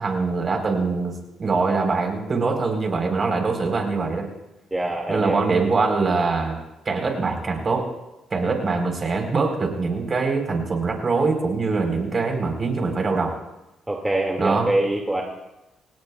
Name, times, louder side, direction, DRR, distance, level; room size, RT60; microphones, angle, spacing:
voice 1, 0.0-4.3 5.1-6.6 6.8-7.9 8.3-13.4 14.4-14.7, right 4 dB, 40° right, 3 dB, 4.2 m, -23 dB
voice 2, 4.7-5.5 13.9-15.2, right 1 dB, 10° right, 0 dB, 2.2 m, -24 dB
28.5 x 17.0 x 2.4 m, 0.96 s
cardioid pair, 90°, 0 cm